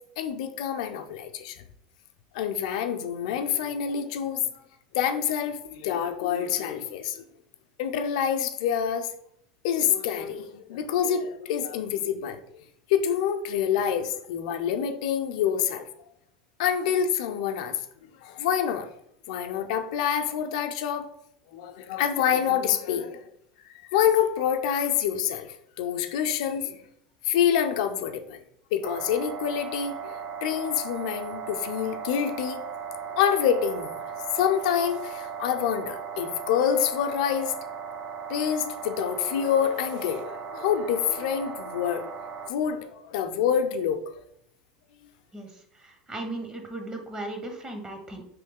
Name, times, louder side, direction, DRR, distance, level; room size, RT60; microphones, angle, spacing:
voice 1, 0.2-1.6 2.3-4.4 4.9-7.2 7.8-9.1 9.6-12.4 12.9-15.9 16.6-17.8 18.2-18.9 19.3-21.1 21.5-23.2 23.9-26.8 27.2-28.4 28.7-32.6 33.2-34.0 34.3-37.5 38.3-42.1 42.5-44.0, left 8 dB, 70° left, 8 dB, 0.4 m, -27 dB
sound 1, 28.8-42.5, right 6 dB, 45° right, 0.4 m, -37 dB
voice 2, 45.8-48.2, right 2 dB, 20° right, 3 dB, 0.8 m, -36 dB
3.1 x 2.7 x 3.6 m, 0.72 s
hypercardioid pair, 85°, 4 cm